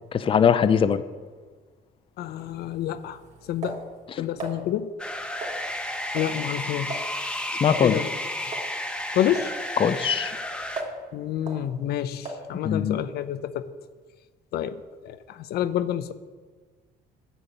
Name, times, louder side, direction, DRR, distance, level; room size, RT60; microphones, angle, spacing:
voice 1, 0.1-1.0 4.1-4.2 7.6-8.0 9.8-10.4 12.6-13.0, left 7 dB, 30° left, 12 dB, 0.5 m, -21 dB
voice 2, 2.2-3.2 3.5-3.8 4.2-4.9 6.1-7.0 7.8-8.1 9.1-9.5 11.1-13.7 14.5-16.1, left 11 dB, 70° left, 12 dB, 0.6 m, -28 dB
sound 1, 2.3-4.6 5.4-5.9 6.2-6.4 6.6-7.1 7.4-7.5 7.7-7.9 8.5-8.7 9.4-9.5 10.0-11.1 11.5-11.6 12.3-12.5, right 3 dB, 45° right, 2.7 m, -37 dB
sound 2, 5.0-10.8, left 1 dB, 5° left, 1.0 m, -32 dB
10.0 x 7.1 x 8.0 m, 1.4 s
cardioid pair, 110°, 17 cm